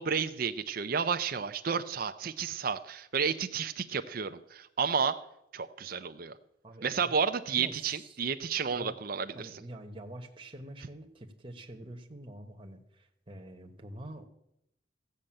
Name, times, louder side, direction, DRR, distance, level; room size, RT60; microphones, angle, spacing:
voice 1, 0.0-5.2 5.5-6.3 6.8-9.2, right 6 dB, 45° right, 9 dB, 0.5 m, -31 dB
voice 2, 6.6-7.0 7.5-8.2 8.7-9.0 9.2-14.3, right 1 dB, 25° right, 4 dB, 1.1 m, -46 dB
14.0 x 6.6 x 8.7 m, 0.82 s
head